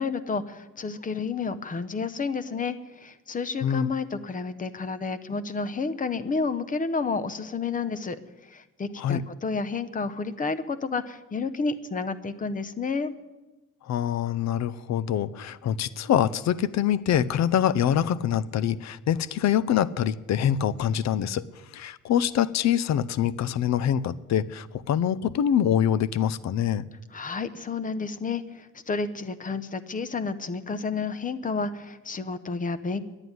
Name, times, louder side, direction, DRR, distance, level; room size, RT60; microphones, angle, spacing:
voice 1, 0.0-8.2 8.5-13.1 27.1-33.0, left 4 dB, 25° left, 13 dB, 0.8 m, -30 dB
voice 2, 13.8-21.5 21.7-26.8, left 9 dB, 65° left, 18 dB, 0.6 m, -25 dB
11.0 x 9.8 x 9.4 m, 1.1 s
cardioid pair, 140°, 30 cm